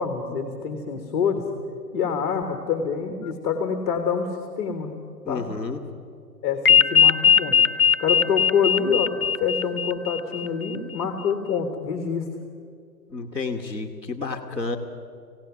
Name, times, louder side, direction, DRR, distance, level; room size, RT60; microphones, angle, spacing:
voice 1, 0.0-1.5 1.9-4.9 5.3-5.5 6.4-7.6 8.0-12.3, left 6 dB, 20° left, 5 dB, 1.5 m, -26 dB
voice 2, 5.2-5.8 13.1-14.8, left 3 dB, 5° right, -4 dB, 1.0 m, -30 dB
sound 1, 6.6-10.8, left 8 dB, 55° left, 0.9 m, -19 dB
26.5 x 17.0 x 6.1 m, 2.4 s
hypercardioid pair, 150°, 50 cm